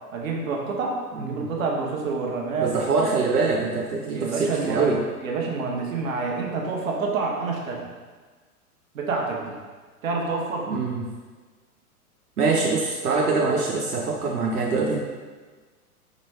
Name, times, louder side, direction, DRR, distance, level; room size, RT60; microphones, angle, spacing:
voice 1, 0.1-2.7 3.0-3.1 4.1-5.0 5.2-7.8 8.9-9.5 10.0-10.7, right 4 dB, 60° right, 0 dB, 1.0 m, -28 dB
voice 2, 2.6-5.0 10.7-11.0 12.4-15.0, right 4 dB, 85° right, -1 dB, 0.6 m, -24 dB
5.1 x 3.1 x 3.3 m, 1.4 s
figure-of-eight pair, 105°, 45 cm